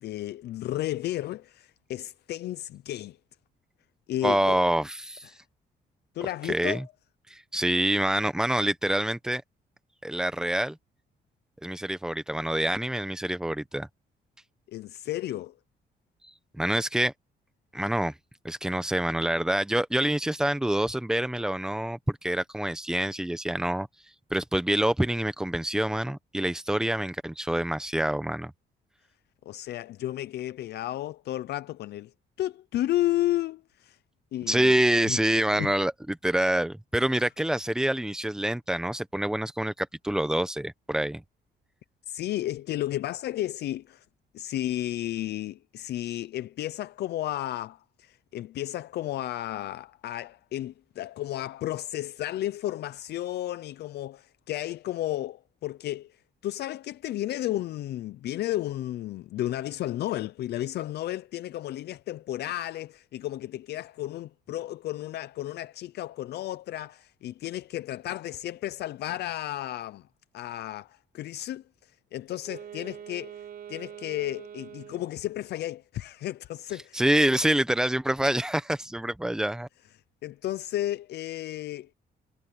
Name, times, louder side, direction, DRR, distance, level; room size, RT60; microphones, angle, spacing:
voice 1, 0.0-3.2 4.1-4.6 5.2-5.4 6.1-6.8 14.7-15.5 29.5-34.0 34.3-34.8 35.1-35.2 35.6-35.7 37.2-37.3 42.1-44.1 44.3-70.1 70.3-77.0 80.2-81.9, left 14 dB, 65° left, 0.5 m, -33 dB
voice 2, 4.2-5.3 6.4-6.9 7.3-9.4 10.0-10.8 11.6-13.9 16.6-17.1 17.7-18.1 18.4-23.9 24.3-28.5 34.5-41.2 76.9-79.7, right 1 dB, 5° right, 0.9 m, -26 dB
Wind instrument woodwind instrument, 72.4-75.3, right 9 dB, 55° right, 5.1 m, -44 dB
cardioid pair, 170°, 18 cm